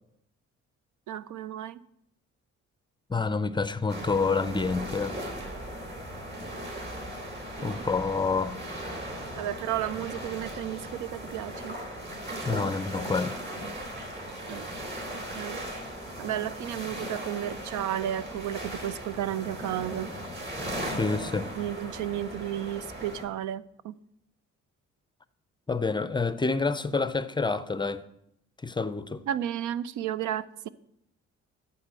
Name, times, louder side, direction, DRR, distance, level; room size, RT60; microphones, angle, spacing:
voice 1, 1.1-1.8 7.6-7.8 9.4-11.8 14.5-14.7 15.1-15.6 16.2-20.1 21.6-24.0 29.3-30.7, right 11 dB, 80° right, 0.5 m, -33 dB
voice 2, 3.1-5.2 7.6-8.6 12.5-13.4 21.0-21.5 25.7-28.0 28.6-29.2, left 4 dB, 15° left, 0.5 m, -28 dB
sound 1, 3.9-23.2, right 1 dB, 35° right, 3.9 m, -37 dB
12.5 x 4.3 x 7.6 m
cardioid pair, 90°, 30 cm